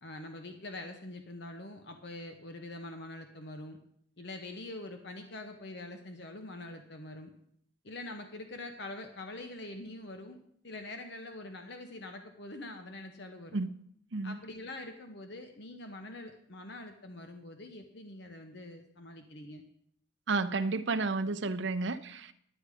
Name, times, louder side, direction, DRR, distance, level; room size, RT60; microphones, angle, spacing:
voice 1, 0.0-3.8 4.2-7.3 7.8-10.4 10.6-13.6 14.2-19.6, left 2 dB, 60° left, 5 dB, 0.9 m, -44 dB
voice 2, 20.3-22.3, right 3 dB, 65° right, 11 dB, 0.7 m, -31 dB
10.0 x 9.7 x 4.9 m, 0.68 s
head